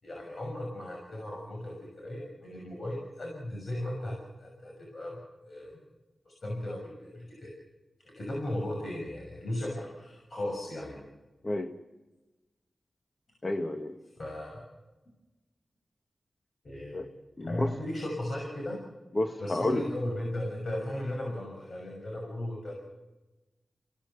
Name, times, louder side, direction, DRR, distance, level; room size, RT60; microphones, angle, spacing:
voice 1, 0.0-5.8 6.2-7.5 8.2-11.0 14.2-14.6 16.6-17.1 17.4-18.8 19.4-22.7, left 1 dB, 60° left, 1 dB, 6.4 m, -36 dB
voice 2, 13.4-14.0 16.9-17.1 17.4-17.7 19.1-19.8, left 2 dB, 40° left, 4 dB, 1.6 m, -30 dB
27.0 x 18.0 x 7.1 m, 1.1 s
cardioid pair, 45°, 0 cm